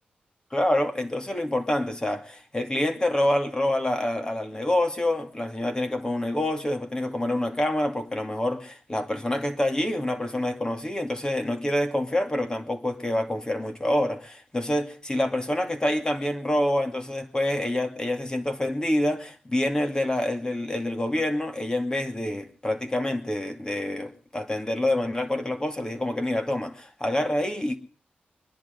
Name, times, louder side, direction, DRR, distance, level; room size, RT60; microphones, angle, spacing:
voice 1, 0.5-27.8, left 1 dB, 20° left, 2.4 m, -27 dB
23.0 x 10.5 x 5.3 m
cardioid pair, 85°, 3 cm